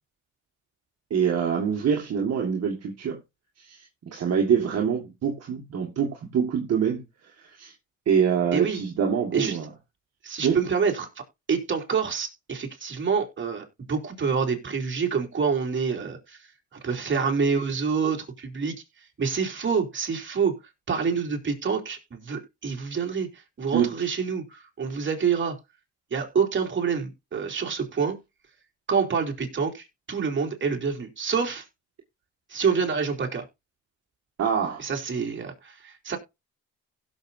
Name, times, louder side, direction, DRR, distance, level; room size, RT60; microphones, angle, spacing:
voice 1, 1.1-3.2 3.6-3.9 4.1-7.0 7.4-7.7 8.1-9.7 10.4-10.6 23.7-23.9 34.4-34.8, right 7 dB, 55° right, 2.0 m, -25 dB
voice 2, 10.2-11.1 11.5-16.4 16.7-18.7 19.2-20.6 20.9-25.6 26.1-28.2 28.9-31.6 32.5-33.4 34.8-36.2, right 6 dB, 40° right, 3.2 m, -27 dB
16.5 x 6.9 x 2.7 m
cardioid pair, 90°, 30 cm